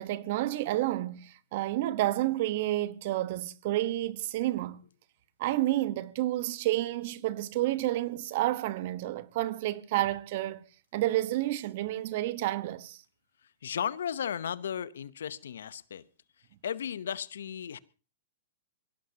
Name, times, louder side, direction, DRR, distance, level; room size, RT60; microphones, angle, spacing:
voice 1, 0.0-4.8 5.4-13.0, right 15 dB, 55° right, 1.2 m, -30 dB
voice 2, 13.6-16.0 16.6-17.8, left 8 dB, 75° left, 0.8 m, -35 dB
23.5 x 17.0 x 2.9 m
hypercardioid pair, 115°, 0 cm